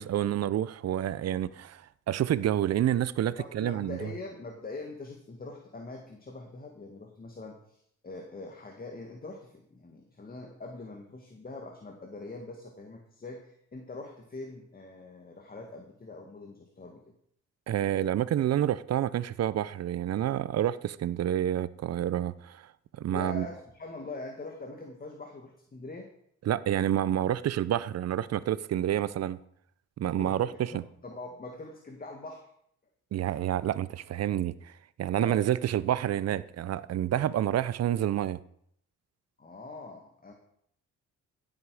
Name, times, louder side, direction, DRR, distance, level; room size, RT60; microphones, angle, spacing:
voice 1, 0.0-4.1 17.7-22.7 23.0-23.5 26.4-29.4 30.0-30.5 30.7-30.8 33.1-34.7 35.0-38.4, right 11 dB, 55° right, 0.6 m, -28 dB
voice 2, 3.4-17.0 23.1-26.1 29.2-29.3 30.2-32.5 35.2-35.4 39.4-40.3, left 2 dB, 30° left, 1.9 m, -43 dB
15.5 x 8.1 x 4.9 m
cardioid pair, 90°, 30 cm